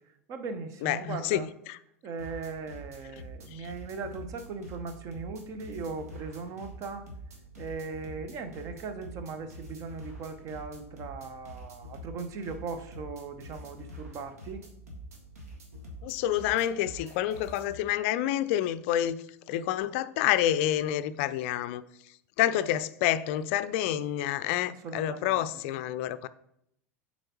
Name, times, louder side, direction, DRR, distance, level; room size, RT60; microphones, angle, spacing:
voice 1, 0.3-1.5 2.0-7.1 7.6-14.7 24.7-25.6, right 4 dB, 40° right, 0.8 m, -39 dB
voice 2, 0.8-1.4 1.7-1.8 3.5-3.7 16.0-19.2 19.5-21.8 22.4-26.3, left 12 dB, 55° left, 0.4 m, -28 dB
sound 1, 2.2-17.8, equal, 75° right, 1.6 m, -46 dB
7.7 x 4.2 x 3.0 m
figure-of-eight pair, 85°, 8 cm